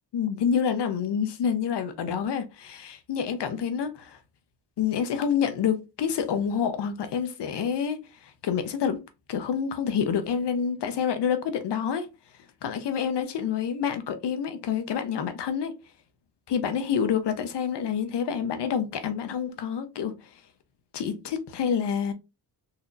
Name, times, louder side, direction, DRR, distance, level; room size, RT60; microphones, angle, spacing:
voice 1, 0.1-4.2 4.8-9.0 9.3-12.1 12.6-15.7 16.5-20.1 20.9-22.1, left 7 dB, 70° left, 0.8 m, -28 dB
4.1 x 2.8 x 2.4 m
cardioid pair, 120°, 42 cm